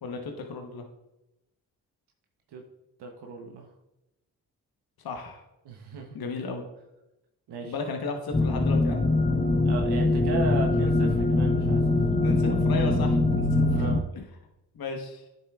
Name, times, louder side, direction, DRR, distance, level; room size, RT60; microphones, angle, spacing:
voice 1, 0.0-0.8 5.0-5.4 6.1-6.6 7.6-9.0 12.1-13.9 14.1-14.2 14.7-15.2, left 4 dB, 65° left, 3 dB, 1.1 m, -34 dB
voice 2, 3.0-3.7 5.6-6.1 7.5-7.7 9.6-12.0 13.7-14.1, right 3 dB, 80° right, 1 dB, 1.0 m, -35 dB
sound 1, 8.3-14.0, left 2 dB, 20° left, 0.8 m, -23 dB
9.6 x 7.2 x 2.4 m, 0.94 s
supercardioid pair, 40°, 40 cm